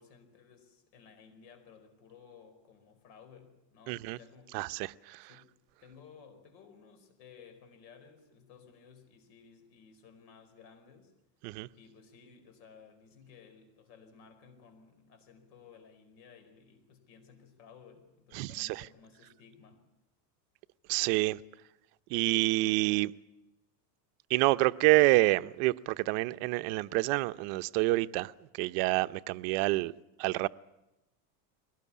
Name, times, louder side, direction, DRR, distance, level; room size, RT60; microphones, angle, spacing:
voice 1, 0.0-4.8 5.2-5.5 5.8-11.1 11.7-19.8, left 6 dB, 80° left, 4.9 m, -56 dB
voice 2, 3.9-4.2 4.5-5.3 11.4-11.7 18.3-18.9 20.9-21.4 22.1-23.1 24.3-29.9 30.2-30.5, right 20 dB, 60° right, 0.8 m, -28 dB
22.5 x 18.0 x 8.5 m
supercardioid pair, 145°, 50 cm